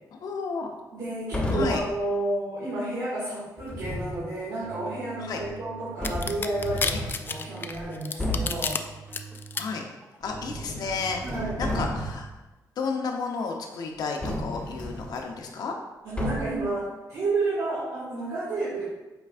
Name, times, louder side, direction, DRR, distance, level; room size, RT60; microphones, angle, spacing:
voice 1, 0.1-0.7 1.5-1.8 5.2-5.4 6.9-7.0 9.6-9.8 10.2-11.2 11.6-12.3 12.8-15.7, left 4 dB, 70° left, 2 dB, 0.9 m, -32 dB
voice 2, 0.9-8.8 11.2-11.9 16.0-18.8, right 2 dB, 70° right, -9 dB, 2.1 m, -31 dB
sound 1, 1.3-1.9 3.6-4.2 5.4-5.5 6.0-7.2 7.7-7.8 8.2-8.7 10.2-10.9 11.2-12.3 14.2-15.2 16.2-16.7, left 1 dB, 15° left, 0.9 m, -32 dB
sound 2, 3.6-11.8, right 5 dB, 25° right, 1.0 m, -44 dB
sound 3, 6.0-8.8 9.1-9.6, left 5 dB, 30° left, 0.3 m, -29 dB
7.9 x 4.7 x 2.5 m, 1.1 s
wide cardioid pair, 150°, 7 cm